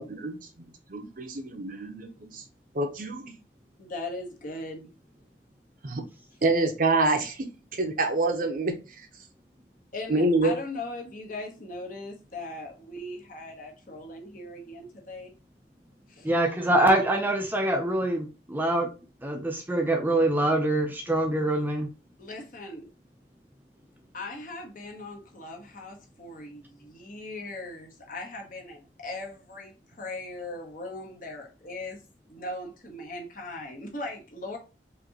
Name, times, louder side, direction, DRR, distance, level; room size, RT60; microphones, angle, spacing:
voice 1, 0.0-2.1 2.7-3.4 5.8-6.0 6.4-7.5 7.7-9.1 10.1-10.5, right 2 dB, 50° right, 0.8 m, -27 dB
voice 2, 3.8-4.9 9.9-15.3 16.1-16.2 22.2-22.9 24.1-32.0 32.3-34.6, left 2 dB, 50° left, 1.1 m, -39 dB
voice 3, 16.3-18.9 19.2-21.9, right 1 dB, 10° right, 0.6 m, -24 dB
5.0 x 2.8 x 2.8 m
head